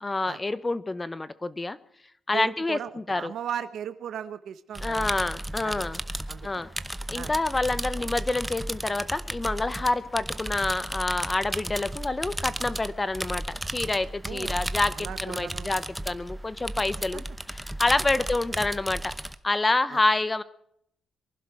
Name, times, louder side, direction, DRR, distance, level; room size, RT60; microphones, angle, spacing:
voice 1, 0.0-1.8 2.3-3.3 4.8-6.0 6.4-6.7 7.1-17.2 17.5-19.1 19.4-20.4, left 2 dB, 20° left, 15 dB, 0.9 m, -27 dB
voice 2, 2.3-5.1 5.6-5.8 6.3-6.6 7.1-7.3 14.2-14.6 14.9-15.7 17.1-17.2 19.9-20.0, right 8 dB, 70° right, 12 dB, 0.9 m, -37 dB
sound 1, 4.8-19.4, right 1 dB, 5° right, 0.9 m, -34 dB
23.5 x 12.0 x 4.8 m, 0.71 s
cardioid pair, 115°, 0 cm